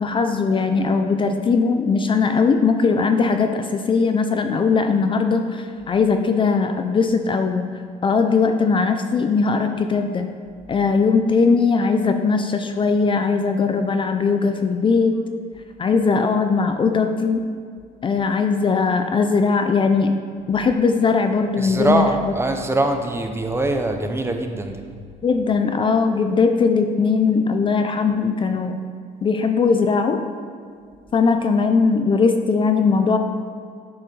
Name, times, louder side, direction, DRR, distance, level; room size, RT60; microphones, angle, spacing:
voice 1, 0.0-7.6 8.0-10.3 10.7-15.1 15.8-17.4 18.0-20.1 20.5-22.1 25.2-28.8 29.2-30.3 31.1-33.2, left 4 dB, 30° left, 6 dB, 0.4 m, -19 dB
voice 2, 21.6-24.8, right 2 dB, 15° right, 5 dB, 0.6 m, -22 dB
10.5 x 4.5 x 3.3 m, 2.2 s
cardioid pair, 110°, 17 cm